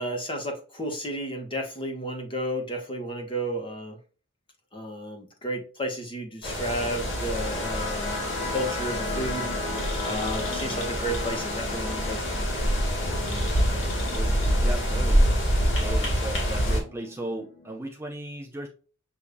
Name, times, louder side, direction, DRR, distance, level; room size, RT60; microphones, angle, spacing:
voice 1, 0.0-4.0 4.7-8.2 8.5-9.5 10.0-12.5, right 1 dB, 25° left, 2 dB, 1.3 m, -32 dB
sound 1, 6.4-16.8, equal, 75° left, 1.9 m, -26 dB
sound 2, 6.8-17.8, left 2 dB, 50° left, 1.5 m, -38 dB
voice 2, 14.1-15.3 15.7-18.7, right 1 dB, 15° right, 1 dB, 0.7 m, -36 dB
6.8 x 2.9 x 2.3 m, 0.36 s
head